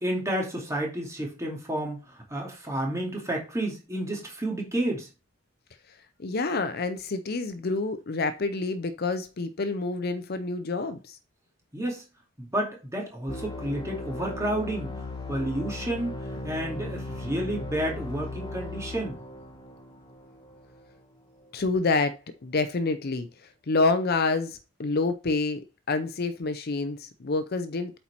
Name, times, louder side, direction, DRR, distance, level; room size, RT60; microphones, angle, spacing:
voice 1, 0.0-5.1 11.7-12.0 12.4-14.9 15.3-16.2 16.4-19.1, right 1 dB, 15° right, 2.5 m, -30 dB
voice 2, 6.2-11.2 21.5-23.3 23.7-25.6 25.9-27.9, left 3 dB, 50° left, 0.6 m, -27 dB
sound 1, 13.3-20.8, left 2 dB, 20° left, 1.4 m, -37 dB
8.3 x 4.5 x 4.2 m
head